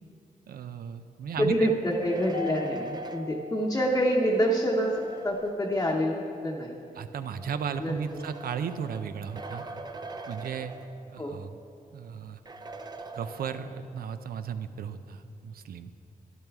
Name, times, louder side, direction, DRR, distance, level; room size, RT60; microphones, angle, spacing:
voice 1, 0.5-1.7 7.0-9.6 10.3-10.7 11.1-11.5 11.9-12.4 13.1-15.9, right 7 dB, 85° right, 10 dB, 0.5 m, -35 dB
voice 2, 1.4-5.0 5.2-6.8 7.8-8.0 11.2-11.3, equal, 20° left, -3 dB, 0.9 m, -26 dB
sound 1, 1.7-6.3 7.2-11.4 11.7-11.8 12.5-14.0, right 3 dB, 30° right, 0.5 m, -44 dB
Mallet percussion, 2.3-4.8, left 3 dB, 65° left, 1.2 m, -41 dB
12.0 x 10.5 x 3.5 m, 2.6 s
wide cardioid pair, 110°, 15 cm